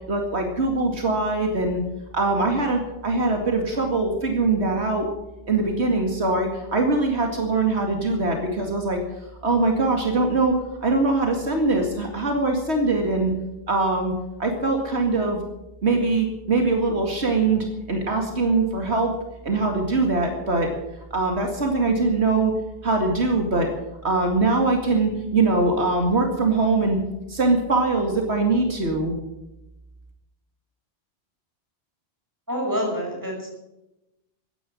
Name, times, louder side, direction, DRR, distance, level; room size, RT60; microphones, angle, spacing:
voice 1, 0.1-1.8 2.1-5.1 5.5-9.0 9.4-10.6 10.8-13.3 13.7-14.1 14.4-15.4 15.8-19.1 19.4-20.7 21.1-22.5 22.8-23.7 24.0-27.0 27.3-29.1, right 3 dB, 80° right, 3 dB, 2.5 m, -22 dB
voice 2, 32.5-33.5, equal, 15° right, -1 dB, 6.3 m, -27 dB
15.5 x 10.0 x 8.7 m, 0.94 s
omnidirectional pair, 1.1 m